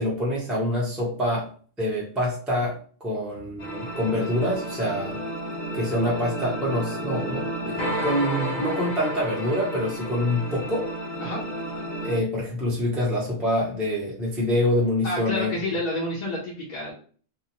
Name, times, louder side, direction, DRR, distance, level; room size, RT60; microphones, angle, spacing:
voice 1, 0.0-1.5 1.8-5.2 5.7-10.9 12.0-15.5, left 1 dB, ahead, -5 dB, 0.6 m, -26 dB
sound 1, 3.6-12.2, right 1 dB, 80° left, 1.1 m, -32 dB
voice 2, 15.0-16.9, left 1 dB, 45° left, -5 dB, 0.7 m, -29 dB
2.7 x 2.1 x 2.9 m, 0.43 s
omnidirectional pair, 1.1 m